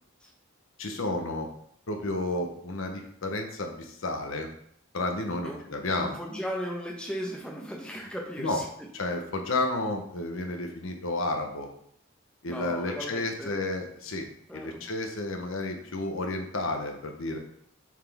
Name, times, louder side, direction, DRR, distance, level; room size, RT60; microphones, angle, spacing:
voice 1, 0.8-1.5 1.9-4.5 4.9-6.2 8.4-8.6 8.9-11.7 12.4-14.3 14.5-17.4, left 2 dB, 70° left, 3 dB, 0.9 m, -31 dB
voice 2, 5.9-8.6 12.5-13.6 14.5-14.9, equal, 5° left, -2 dB, 0.9 m, -36 dB
7.2 x 4.2 x 3.5 m, 0.66 s
head